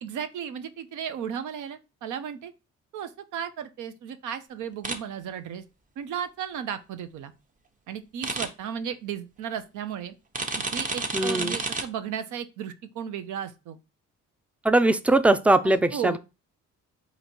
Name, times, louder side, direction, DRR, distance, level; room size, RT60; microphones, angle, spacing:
voice 1, 0.0-2.5 2.9-5.6 6.0-7.3 7.9-10.1 10.6-13.8 15.6-16.2, right 8 dB, 80° right, 0.7 m, -35 dB
sound 1, 4.8-5.0 8.2-8.5 10.3-11.8, right 3 dB, 25° right, 0.8 m, -29 dB
voice 2, 11.1-11.6 14.6-16.2, right 2 dB, 5° right, 0.3 m, -21 dB
4.0 x 2.8 x 4.3 m
cardioid pair, 90°, 30 cm